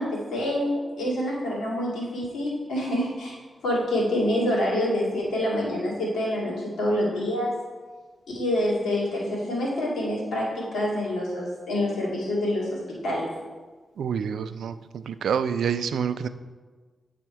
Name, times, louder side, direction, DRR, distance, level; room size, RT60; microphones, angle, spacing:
voice 1, 0.0-3.4 3.6-7.5 8.3-13.2, left 1 dB, 90° left, -5 dB, 2.4 m, -26 dB
voice 2, 14.0-16.3, right 7 dB, 85° right, 12 dB, 0.3 m, -27 dB
8.8 x 4.2 x 4.6 m, 1.4 s
cardioid pair, 60°, 0 cm